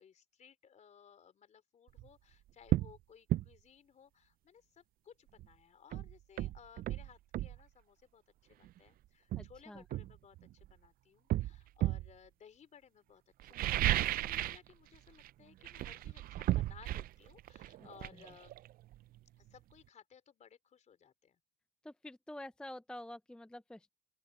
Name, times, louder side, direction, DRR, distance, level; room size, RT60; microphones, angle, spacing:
voice 1, 0.0-18.5 19.4-21.4, left 8 dB, 45° left, 3.7 m, -60 dB
sound 1, 1.9-2.1 2.7-2.9 3.3-3.5 5.4-5.5 5.9-7.6 8.6-8.8 9.3-10.7 11.3-12.1 13.4-14.7 14.9-15.3 15.6-19.2 19.5-19.6, right 15 dB, 60° right, 0.4 m, -34 dB
voice 2, 9.4-9.8 17.8-17.9 21.8-23.9, left 1 dB, 5° left, 0.5 m, -48 dB
open air
cardioid pair, 110°, 17 cm